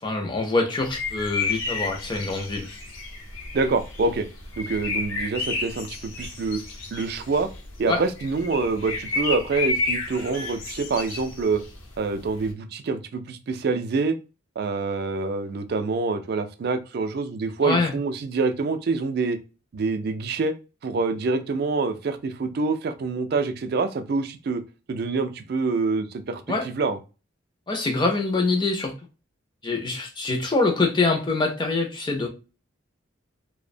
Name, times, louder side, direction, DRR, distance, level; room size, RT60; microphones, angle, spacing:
voice 1, 0.0-2.7 7.9-8.0 17.6-17.9 26.5-26.7 27.7-28.9 29.6-32.3, left 3 dB, 20° left, 2 dB, 0.4 m, -24 dB
sound 1, 0.8-12.5, left 3 dB, 80° left, 0.6 m, -31 dB
voice 2, 3.5-4.3 4.6-5.9 6.2-6.6 6.9-7.5 7.8-11.6 12.0-14.2 14.6-19.4 19.7-20.5 20.8-24.6 24.9-27.0, right 4 dB, 50° right, 9 dB, 0.3 m, -26 dB
2.6 x 2.0 x 2.5 m, 0.31 s
head